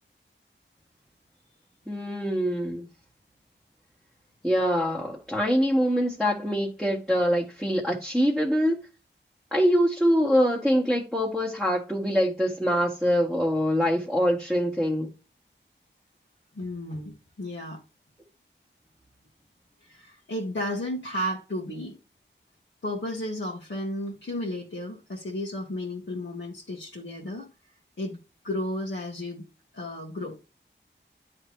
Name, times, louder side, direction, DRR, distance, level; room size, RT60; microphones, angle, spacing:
voice 1, 1.9-2.9 4.4-8.8 9.5-15.1, equal, ahead, 1.4 m, -24 dB
voice 2, 16.5-17.8 19.8-21.9 22.8-27.5 28.0-28.2 28.4-29.5 29.7-30.3, left 1 dB, 70° left, 1.5 m, -33 dB
9.8 x 3.3 x 3.1 m
wide cardioid pair, 50°, 20 cm